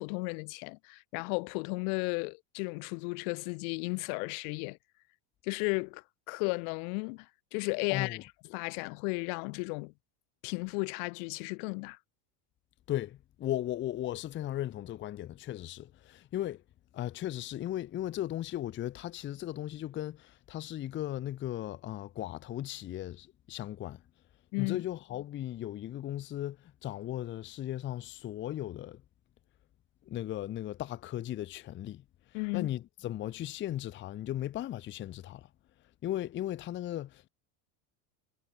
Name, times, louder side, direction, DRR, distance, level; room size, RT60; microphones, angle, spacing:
voice 1, 0.0-4.8 5.4-9.9 10.4-12.0 24.5-24.8 32.3-32.7, left 39 dB, 80° left, 0.8 m, -34 dB
voice 2, 7.9-8.2 12.9-16.6 16.9-24.0 24.6-29.0 30.1-32.0 32.5-35.5 36.0-37.3, left 13 dB, 25° left, 0.5 m, -37 dB
cardioid pair, 140°, 44 cm